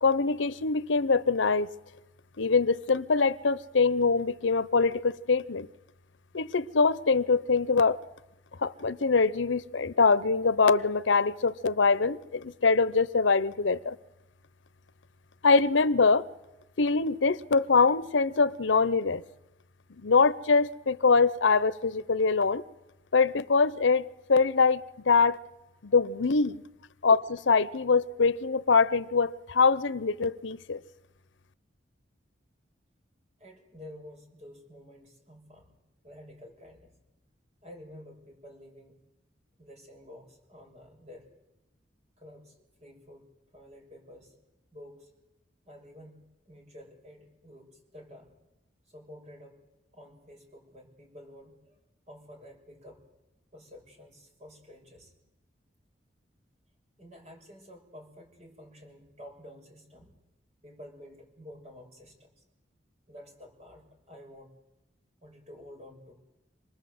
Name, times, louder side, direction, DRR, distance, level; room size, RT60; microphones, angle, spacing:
voice 1, 0.0-1.7 2.4-5.7 6.3-8.0 8.6-14.0 15.4-16.2 16.8-19.2 20.0-22.6 23.1-25.4 25.8-26.6 27.0-30.8, left 4 dB, 90° left, 0.8 m, -24 dB
voice 2, 33.4-35.8 36.0-36.9 37.6-39.0 39.6-41.3 42.2-44.4 44.7-45.1 45.7-48.3 48.9-49.6 49.9-51.8 52.1-53.0 53.5-55.1 57.0-60.2 60.6-62.4 63.1-64.5 65.2-66.1, left 1 dB, 40° right, 6.0 m, -50 dB
26.5 x 20.0 x 7.9 m
head